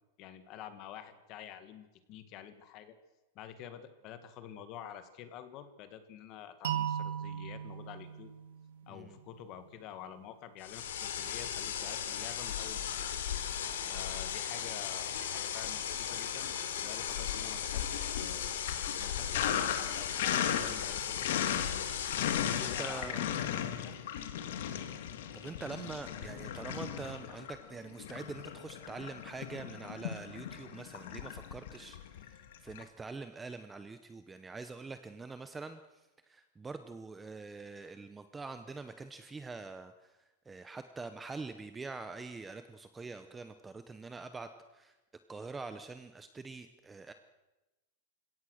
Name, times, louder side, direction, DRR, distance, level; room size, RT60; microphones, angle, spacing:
voice 1, 0.2-2.9 3.3-8.3 8.9-13.1 13.8-15.8 16.1-18.5 19.0-21.7 22.4-24.3, left 10 dB, 30° left, 10 dB, 1.8 m, -48 dB
sound 1, 6.6-9.6, right 9 dB, 70° right, 2.3 m, -38 dB
voice 2, 8.8-9.2 22.5-23.3 25.3-45.0 45.3-47.1, right 4 dB, 10° right, 9 dB, 0.7 m, -45 dB
sound 2, 10.6-23.1, left 9 dB, 85° left, 3.4 m, -37 dB
Sink (filling or washing), 15.5-16.4 16.7-32.8, left 9 dB, 60° left, 2.1 m, -37 dB
29.5 x 17.0 x 6.5 m, 1.1 s
supercardioid pair, 180°, 0 cm